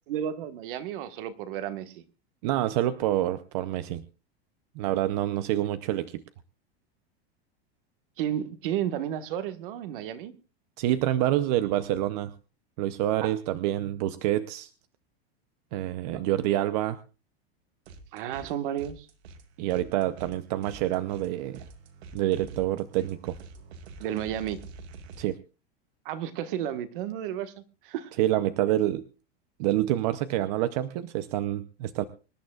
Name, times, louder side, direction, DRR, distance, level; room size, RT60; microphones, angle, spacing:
voice 1, 0.1-2.0 8.2-10.3 13.2-13.3 16.1-16.3 18.1-19.1 24.0-24.6 26.0-27.5 27.8-28.1, right 10 dB, 55° right, 10 dB, 1.5 m, -32 dB
voice 2, 2.4-4.0 4.8-6.2 10.8-12.3 12.8-14.7 15.7-17.0 19.6-21.6 22.1-23.4 25.2-25.4 28.2-29.0 29.6-32.0, right 13 dB, 40° right, 12 dB, 0.6 m, -27 dB
sound 1, 17.8-18.5 18.8-25.2, right 4 dB, 85° right, 2.6 m, -46 dB
25.5 x 11.5 x 2.3 m, 0.33 s
supercardioid pair, 175°, 32 cm